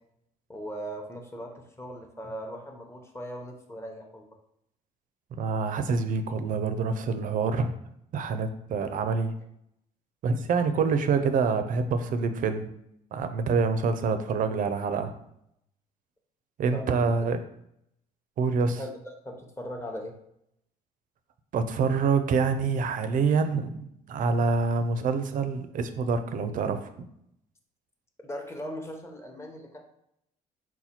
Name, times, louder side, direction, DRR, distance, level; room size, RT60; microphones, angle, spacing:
voice 1, 0.5-4.2 16.7-17.1 18.7-18.9 19.2-20.1 28.2-29.8, equal, 15° left, 2 dB, 0.7 m, -39 dB
voice 2, 5.4-7.7 8.1-9.3 10.2-12.7 13.1-15.1 16.6-17.4 18.4-18.8 21.5-27.1, right 5 dB, 55° right, 9 dB, 0.5 m, -26 dB
4.1 x 2.2 x 4.3 m, 0.77 s
cardioid pair, 100°, 17 cm